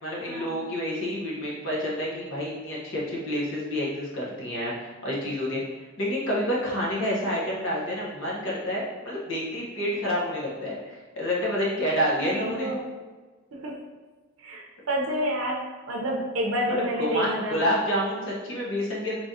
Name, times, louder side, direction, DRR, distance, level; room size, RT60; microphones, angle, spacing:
voice 1, 0.0-5.6 6.0-12.7 16.7-19.2, equal, 60° left, -4 dB, 1.0 m, -28 dB
voice 2, 12.1-12.8 13.5-13.8 14.4-17.7, equal, 80° right, -1 dB, 0.6 m, -29 dB
3.7 x 3.3 x 2.7 m, 1.3 s
head